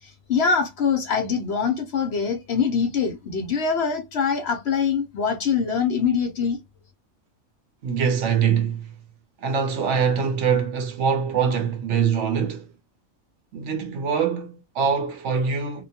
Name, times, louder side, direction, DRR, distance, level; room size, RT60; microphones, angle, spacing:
voice 1, 0.0-6.6, left 6 dB, 65° left, 0.7 m, -24 dB
voice 2, 7.8-8.9 9.4-12.7 13.5-15.8, right 6 dB, 65° right, 0.9 m, -23 dB
2.8 x 2.2 x 2.7 m
omnidirectional pair, 1.4 m